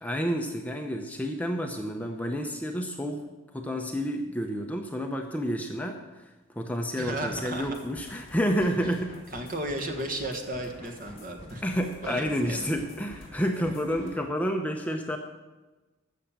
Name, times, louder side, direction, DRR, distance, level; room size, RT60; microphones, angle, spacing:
voice 1, 0.0-3.2 3.5-6.0 6.6-9.2 11.6-15.2, equal, 5° left, 3 dB, 0.7 m, -29 dB
voice 2, 7.0-7.8 9.3-11.6 12.0-12.6 13.5-13.7, right 1 dB, 40° right, 4 dB, 1.5 m, -34 dB
sound 1, 7.3-14.2, left 1 dB, 30° left, 3.6 m, -48 dB
14.0 x 6.6 x 7.4 m, 1.2 s
head